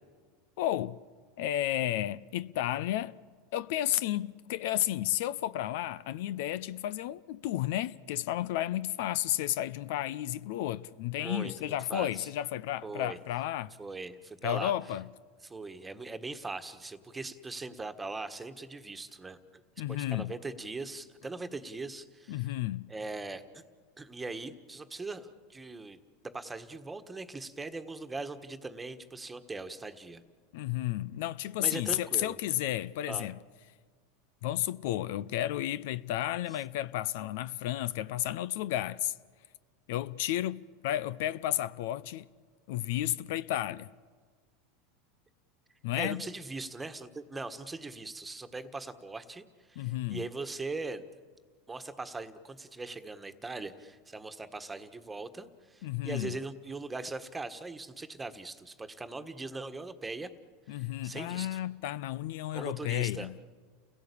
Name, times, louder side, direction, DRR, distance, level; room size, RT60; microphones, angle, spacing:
voice 1, 0.6-1.0 1.4-3.2 3.5-13.7 14.4-15.1 19.8-20.3 22.3-22.9 30.5-33.4 34.4-39.1 39.9-42.3 42.7-43.9 45.8-46.2 49.8-50.2 55.8-56.3 60.7-63.3, left 13 dB, 70° left, 0.6 m, -32 dB
voice 2, 11.2-12.3 12.8-13.2 13.8-14.7 15.4-19.6 19.9-22.5 22.9-23.4 24.0-26.0 26.2-30.2 31.6-32.4 33.1-33.3 46.0-51.1 51.7-60.3 60.7-61.6 62.5-63.3, right 3 dB, 15° right, 1.6 m, -40 dB
29.5 x 16.5 x 8.5 m
hypercardioid pair, 110°, 0 cm